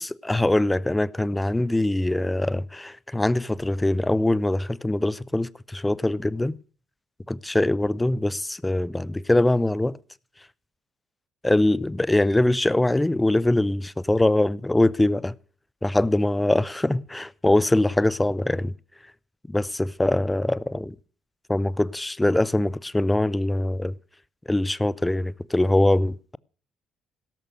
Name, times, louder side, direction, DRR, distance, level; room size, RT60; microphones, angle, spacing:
voice 1, 0.0-6.6 7.3-10.0 11.4-15.3 15.8-18.7 19.5-20.9 21.5-23.9 24.5-26.4, left 1 dB, 10° left, 0.7 m, -23 dB
16.5 x 13.5 x 6.3 m
figure-of-eight pair, 45°, 0 cm